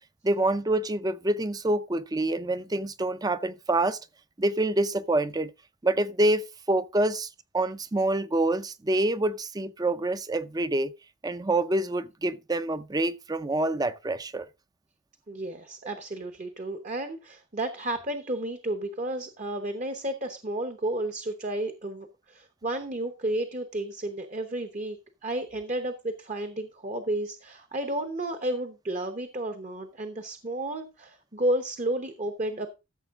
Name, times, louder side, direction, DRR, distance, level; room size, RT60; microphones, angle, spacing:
voice 1, 0.2-4.0 4.4-5.5 5.8-10.9 11.2-14.5, right 2 dB, 20° right, 0.5 m, -26 dB
voice 2, 15.3-25.0 25.2-32.7, right 1 dB, 35° right, 0.9 m, -32 dB
14.0 x 7.0 x 3.6 m
head